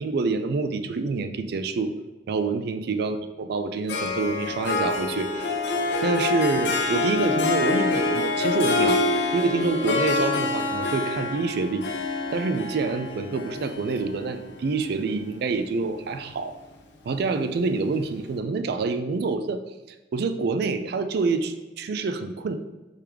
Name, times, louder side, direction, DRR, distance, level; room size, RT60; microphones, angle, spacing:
voice 1, 0.0-1.9 2.3-5.6 6.0-9.0 9.3-11.9 12.3-16.6 17.0-19.6 20.1-22.5, right 4 dB, 55° right, 9 dB, 0.3 m, -27 dB
Harp, 3.9-15.3, left 3 dB, 65° left, 0.6 m, -26 dB
4.6 x 3.3 x 3.5 m, 1.1 s
head